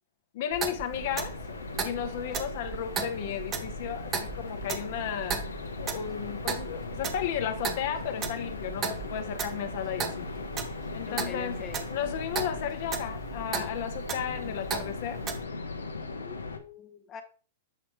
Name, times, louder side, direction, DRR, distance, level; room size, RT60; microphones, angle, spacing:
voice 1, 0.3-1.3 1.8-5.4 5.8-10.3 10.9-11.6 11.9-15.2, left 9 dB, 55° left, 1.0 m, -34 dB
Clock, 0.5-15.4, right 6 dB, 25° right, 0.9 m, -37 dB
sound 1, 0.9-16.6, left 4 dB, 90° left, 0.8 m, -39 dB
voice 2, 11.0-11.9 16.0-17.2, left 5 dB, 30° left, 0.9 m, -44 dB
7.9 x 3.0 x 4.5 m
hypercardioid pair, 110°, 0 cm